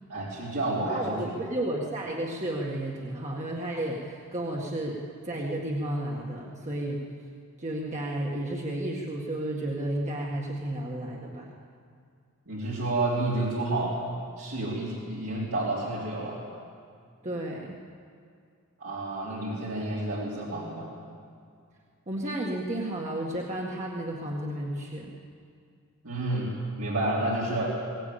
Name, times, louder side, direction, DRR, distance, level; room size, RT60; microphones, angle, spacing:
voice 1, 0.1-1.4 12.5-14.0 14.4-16.4 18.8-20.9 26.0-26.5 26.8-27.8, right 2 dB, 70° right, -7 dB, 3.8 m, -30 dB
voice 2, 0.9-7.1 7.6-11.5 17.2-17.8 22.1-25.1, right 1 dB, 30° right, -2 dB, 1.9 m, -32 dB
22.0 x 18.0 x 8.7 m, 2.3 s
head